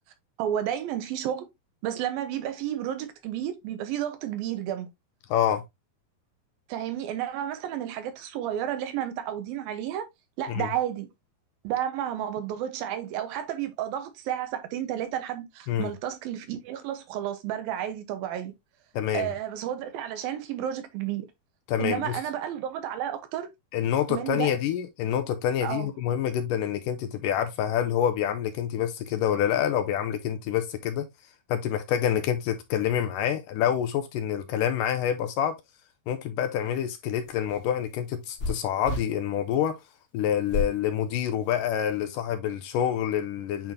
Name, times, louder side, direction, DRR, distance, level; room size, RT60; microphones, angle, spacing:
voice 1, 0.4-1.5 1.8-4.9 6.7-10.1 10.4-11.1 11.6-18.5 19.1-21.3 21.8-23.5 24.1-24.5 25.6-25.9, right 11 dB, 85° right, 2.7 m, -31 dB
voice 2, 5.3-5.6 10.5-10.7 15.7-15.9 18.9-19.3 21.7-22.2 23.7-31.1 31.5-35.6 36.1-39.8 40.1-43.7, left 9 dB, 80° left, 2.1 m, -27 dB
sound 1, 37.2-39.1 40.5-40.8 41.4-42.0, left 2 dB, 45° left, 1.7 m, -32 dB
8.7 x 4.0 x 2.6 m
omnidirectional pair, 4.2 m